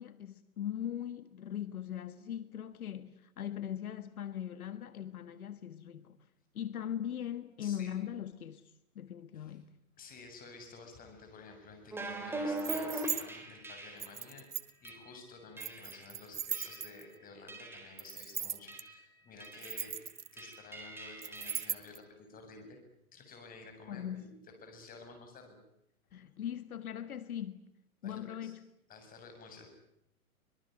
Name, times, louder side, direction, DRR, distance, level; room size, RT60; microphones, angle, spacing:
voice 1, 0.0-6.2 6.5-9.7 23.9-24.3 26.1-27.6 28.0-28.7, left 10 dB, 75° left, 1.7 m, -40 dB
voice 2, 7.6-7.9 9.3-9.6 10.0-20.0 20.3-22.8 23.1-24.3 24.6-25.6 28.0-28.5 28.9-29.7, left 4 dB, 20° left, 7.5 m, -52 dB
sound 1, 11.9-14.2 14.8-15.0 15.6-16.1 16.5-17.0 17.5-18.0 18.7-19.0 19.4-19.9 20.4-21.7, right 1 dB, 5° right, 4.0 m, -41 dB
sound 2, 12.6-13.2 14.0-14.9 15.6-17.1 18.0-18.8 19.4-20.5 21.2-22.0, right 8 dB, 85° right, 1.8 m, -38 dB
24.5 x 22.5 x 9.3 m
hypercardioid pair, 135°, 43 cm